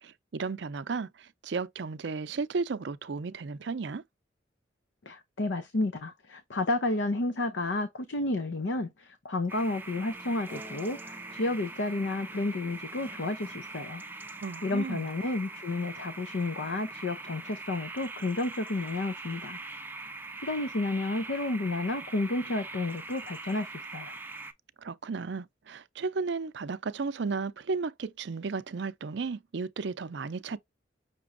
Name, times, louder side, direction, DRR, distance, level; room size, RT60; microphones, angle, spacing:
voice 1, 0.0-4.0 14.4-15.1 24.8-30.6, right 4 dB, 70° right, 0.5 m, -34 dB
voice 2, 5.1-14.0 14.6-19.6 20.4-24.1, left 2 dB, 75° left, 0.6 m, -31 dB
sound 1, 9.5-24.5, right 3 dB, 10° right, 0.4 m, -42 dB
6.0 x 2.9 x 2.5 m
head